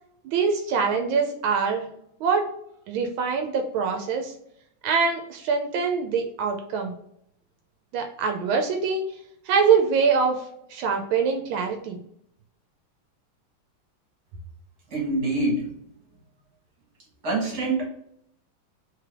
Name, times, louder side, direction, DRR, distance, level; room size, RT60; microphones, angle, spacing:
voice 1, 0.2-1.8 2.2-2.5 2.9-4.3 4.8-6.9 7.9-9.0 9.5-10.4 10.7-12.0, right 5 dB, 90° right, 4 dB, 1.4 m, -24 dB
voice 2, 14.9-15.7 17.2-17.9, right 2 dB, 55° right, -2 dB, 2.1 m, -25 dB
3.6 x 3.3 x 3.5 m, 0.71 s
omnidirectional pair, 2.2 m